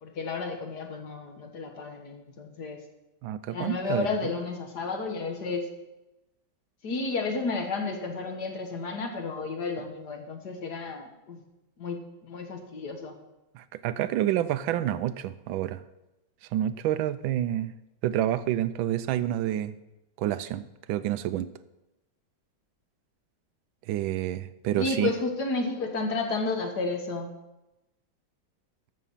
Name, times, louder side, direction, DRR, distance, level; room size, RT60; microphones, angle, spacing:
voice 1, 0.0-2.8 3.5-5.7 6.8-11.4 11.8-13.1 24.8-27.3, left 3 dB, 55° left, 4 dB, 1.9 m, -32 dB
voice 2, 3.2-4.1 13.5-15.8 16.5-17.7 18.0-19.7 20.2-20.6 20.9-21.5 23.9-25.1, right 12 dB, 80° right, 14 dB, 1.3 m, -28 dB
13.5 x 6.7 x 5.6 m, 0.96 s
omnidirectional pair, 2.2 m